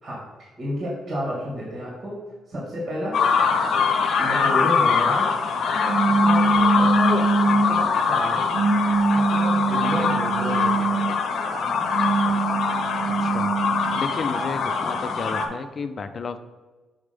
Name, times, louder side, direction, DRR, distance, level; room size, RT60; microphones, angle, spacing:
voice 1, 0.0-3.2 4.2-5.3 6.1-7.0 7.5-8.5 9.1-10.9, equal, 55° right, -5 dB, 2.0 m, -31 dB
sound 1, 3.1-15.5, left 5 dB, 65° left, 0.8 m, -23 dB
sound 2, 5.9-7.9 8.5-11.2 11.8-14.1, right 3 dB, 85° right, 0.6 m, -23 dB
voice 2, 13.2-13.5 14.0-16.4, left 4 dB, 45° left, 9 dB, 0.5 m, -32 dB
6.3 x 3.3 x 5.2 m, 1.3 s
cardioid pair, 90°, 0 cm